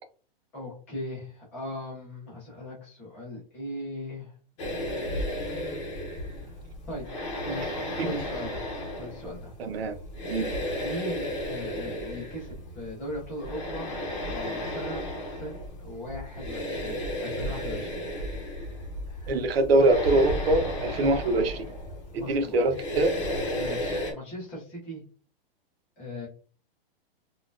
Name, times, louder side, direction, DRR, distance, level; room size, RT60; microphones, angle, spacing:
voice 1, 0.5-4.3 4.7-5.8 6.4-6.6 6.9-7.1 7.4-8.6 9.0-9.5 10.8-13.9 14.3-15.0 15.3-18.2 19.0-19.4 22.1-22.5 23.5-25.0 26.0-26.3, left 1 dB, 5° left, 0.5 m, -39 dB
sound 1, 4.6-24.1, left 1 dB, 30° left, 0.8 m, -34 dB
voice 2, 9.6-10.0 10.3-10.5 19.3-21.6 22.1-23.1, right 2 dB, 80° right, 0.8 m, -23 dB
4.0 x 2.3 x 2.5 m
hypercardioid pair, 175°, 30 cm